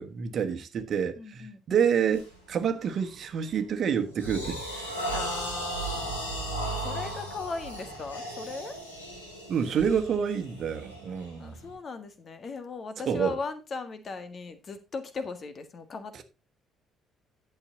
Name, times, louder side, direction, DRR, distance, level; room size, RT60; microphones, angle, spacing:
voice 1, 0.0-4.9 9.5-11.5 13.1-13.3, right 7 dB, 45° right, 1.4 m, -28 dB
voice 2, 1.2-1.8 5.1-8.8 11.4-16.2, left 4 dB, 40° left, 1.7 m, -38 dB
sound 1, 2.1-2.4 2.8-3.1 3.6-11.7, right 1 dB, 80° left, 2.7 m, -36 dB
11.5 x 7.1 x 3.9 m
figure-of-eight pair, 45°, 0 cm